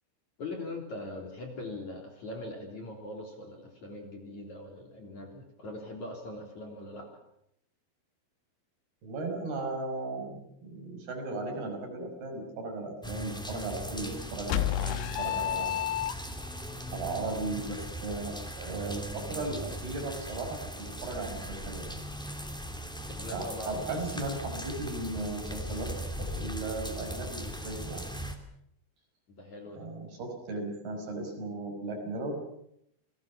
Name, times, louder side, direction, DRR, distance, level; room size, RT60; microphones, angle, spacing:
voice 1, 0.4-7.1 23.1-23.9 29.3-29.9, left 2 dB, 40° left, 2 dB, 4.1 m, -41 dB
voice 2, 9.0-15.8 16.9-21.9 23.3-28.0 29.8-32.4, right 2 dB, 50° right, 3 dB, 7.2 m, -36 dB
sound 1, 13.0-28.3, equal, 5° left, 0.4 m, -39 dB
sound 2, 14.5-16.6, left 12 dB, 75° left, 3.5 m, -30 dB
29.0 x 20.5 x 7.2 m, 0.74 s
omnidirectional pair, 5.8 m